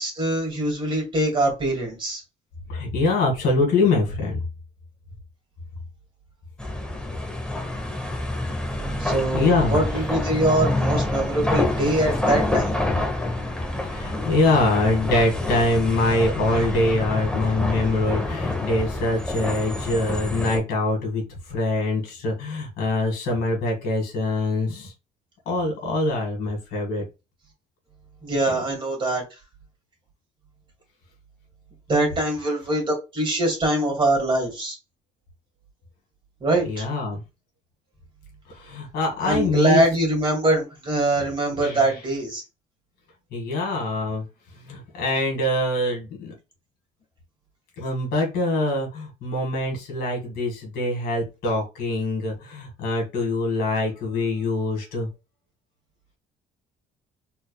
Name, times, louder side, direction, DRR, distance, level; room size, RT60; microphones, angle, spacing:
voice 1, 0.0-2.2 9.0-12.8 28.2-29.2 31.9-34.8 36.4-36.9 39.2-42.4, right 1 dB, 30° right, 2.2 m, -23 dB
voice 2, 2.7-4.4 9.3-9.9 13.9-24.9 25.5-27.0 36.6-37.2 38.5-39.8 41.2-41.3 41.5-41.9 43.3-44.2 44.6-46.3 47.8-55.1, left 2 dB, 70° left, 2.1 m, -24 dB
sound 1, 6.6-20.6, left 2 dB, 5° left, 1.0 m, -27 dB
4.1 x 3.5 x 2.3 m
cardioid pair, 110°, 17 cm